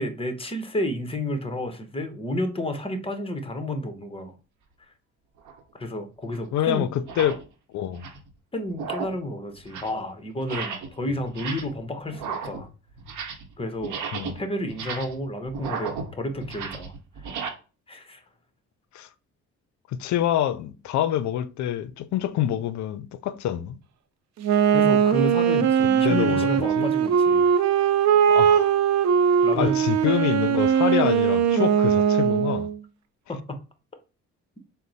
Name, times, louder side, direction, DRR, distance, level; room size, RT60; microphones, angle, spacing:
voice 1, 0.0-4.3 5.7-6.9 8.5-12.7 13.6-14.0 14.3-16.9 17.9-18.2 24.7-27.5 29.4-29.8 33.3-33.6, left 1 dB, 20° left, 0.9 m, -31 dB
sound 1, 5.4-5.6 6.3-6.4 7.0-7.4 7.8-8.3 8.7-9.2 9.6-10.0 10.4-11.0 11.2-11.8 12.1-13.5 13.8-17.5, right 6 dB, 80° right, 0.9 m, -35 dB
voice 2, 6.5-7.4 7.7-8.1 14.1-14.3 18.9-19.1 19.9-23.8 26.0-26.5 26.8-26.9 28.3-28.8 29.5-32.7, left 11 dB, 70° left, 0.5 m, -26 dB
Wind instrument woodwind instrument, 24.4-32.7, right 8 dB, 60° right, 0.5 m, -20 dB
4.1 x 2.1 x 3.9 m
cardioid pair, 90°, 30 cm